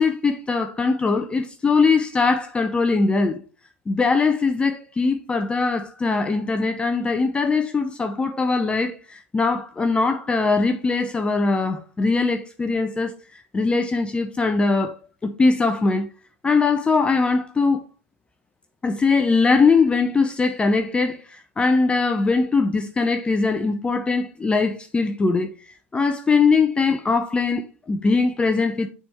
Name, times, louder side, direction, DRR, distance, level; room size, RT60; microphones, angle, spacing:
voice 1, 0.0-3.4 3.9-14.9 15.2-16.1 16.4-17.8 18.8-25.5 25.9-28.9, left 4 dB, 15° left, 0.6 m, -21 dB
6.6 x 3.6 x 4.3 m
hypercardioid pair, 95°, 7 cm